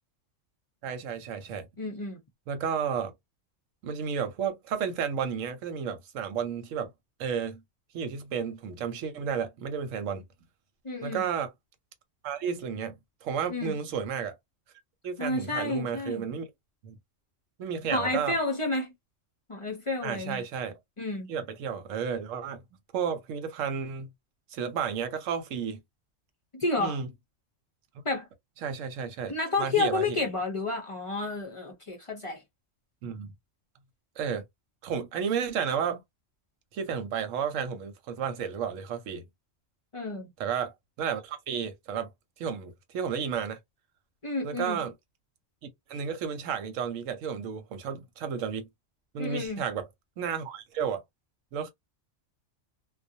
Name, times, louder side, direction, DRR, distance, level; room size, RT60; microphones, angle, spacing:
voice 1, 0.8-1.7 2.5-3.1 3.8-6.9 7.2-7.6 7.9-10.2 11.0-11.5 12.2-14.4 15.0-16.5 16.8-17.0 17.6-18.4 20.0-20.7 21.3-22.6 22.9-24.1 24.5-25.8 26.8-27.1 28.6-30.2 33.0-33.3 34.2-34.4 34.8-36.0 36.7-39.2 40.4-42.1 42.4-43.6 44.4-44.9 45.6-48.7 49.1-49.9 50.2-51.0 51.5-51.7, right 7 dB, 80° right, 1.0 m, -32 dB
voice 2, 1.8-2.2 10.8-11.2 13.5-13.7 15.2-16.2 17.9-18.9 19.5-20.4 21.0-21.3 26.5-27.0 28.0-28.3 29.3-32.4 39.9-40.3 44.2-44.8 49.2-49.6, left 3 dB, 40° left, 0.5 m, -30 dB
2.4 x 2.2 x 2.7 m
omnidirectional pair, 1.3 m